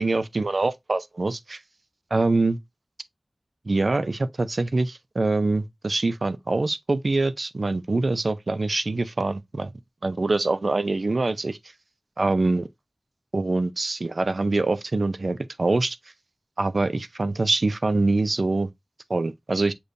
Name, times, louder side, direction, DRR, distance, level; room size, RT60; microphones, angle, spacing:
voice 1, 0.0-1.6 2.1-2.6 3.7-9.7 10.0-11.6 12.2-12.7 13.3-16.0 16.6-18.7 19.1-19.7, right 2 dB, 65° right, 0.4 m, -24 dB
6.7 x 2.3 x 2.6 m
wide cardioid pair, 60°, 0 cm